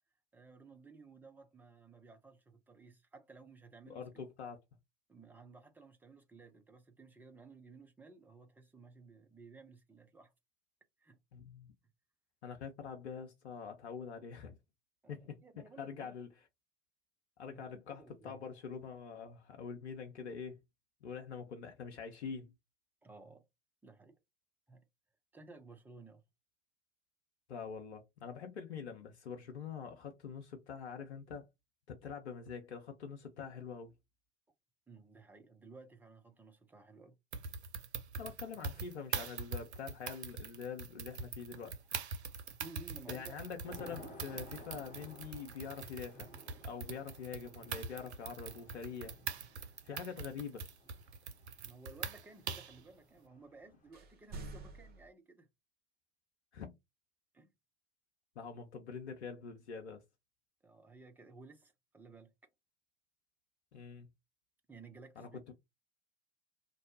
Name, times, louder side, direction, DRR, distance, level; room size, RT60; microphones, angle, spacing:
voice 1, 0.3-4.1 5.1-10.3 11.0-11.2 15.0-16.2 17.4-18.4 23.0-23.4 23.8-24.2 24.7-24.8 25.3-26.2 34.9-37.2 42.6-43.6 51.6-55.5 57.3-57.5 60.6-62.3 64.7-65.5, right 3 dB, 5° right, 0.3 m, -56 dB
voice 2, 3.9-4.6 11.3-11.7 12.4-14.6 15.1-15.4 15.8-16.3 17.4-20.6 21.0-22.5 27.5-31.5 31.9-33.9 38.2-41.8 43.1-46.3 46.6-49.1 49.8-50.6 56.5-56.7 58.4-60.0 63.7-64.1 65.2-65.5, left 6 dB, 75° left, 0.6 m, -45 dB
sound 1, 37.3-52.8, right 5 dB, 75° right, 0.5 m, -43 dB
Thunder / Rain, 41.8-42.4 42.8-53.9, left 1 dB, 20° left, 1.0 m, -57 dB
sound 2, 53.9-55.1, right 2 dB, 30° right, 0.9 m, -47 dB
2.6 x 2.0 x 2.6 m
figure-of-eight pair, 80°, 33 cm